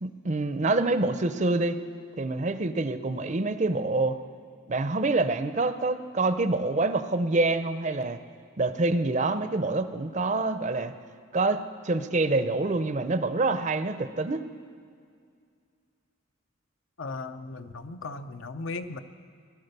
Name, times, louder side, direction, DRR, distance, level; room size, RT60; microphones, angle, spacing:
voice 1, 0.0-1.8 2.2-4.2 4.7-8.2 8.6-10.9 11.3-14.4, right 2 dB, 35° right, 11 dB, 0.5 m, -26 dB
voice 2, 17.0-19.0, left 3 dB, 70° left, 9 dB, 0.7 m, -37 dB
17.5 x 11.5 x 6.7 m, 2.2 s
head